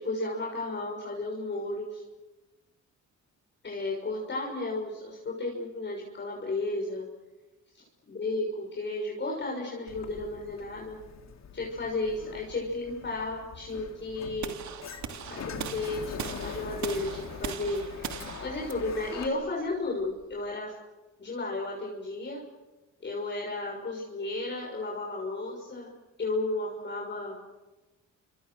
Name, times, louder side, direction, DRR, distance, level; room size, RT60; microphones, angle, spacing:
voice 1, 0.0-2.0 3.6-7.1 8.1-11.0 11.5-14.6 15.3-20.7 21.2-22.4 23.0-25.9 26.2-27.4, left 2 dB, 35° left, -1 dB, 6.5 m, -33 dB
Sliding door, 9.9-19.3, left 6 dB, 60° left, 3.8 m, -43 dB
sound 1, 14.4-20.5, right 8 dB, 70° right, 2.8 m, -40 dB
29.5 x 27.0 x 6.4 m, 1.1 s
cardioid pair, 90°, 30 cm